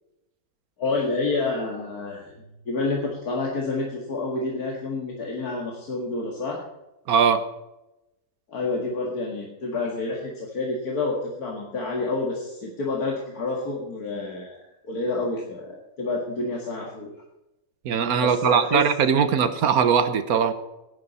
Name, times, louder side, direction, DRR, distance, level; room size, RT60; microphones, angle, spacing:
voice 1, 0.8-2.4 2.7-6.6 8.5-17.1 18.2-18.8, left 3 dB, 90° left, -1 dB, 2.4 m, -29 dB
voice 2, 7.1-7.4 17.8-20.5, right 7 dB, 80° right, 11 dB, 1.5 m, -20 dB
17.0 x 10.5 x 4.2 m, 0.93 s
omnidirectional pair, 1.5 m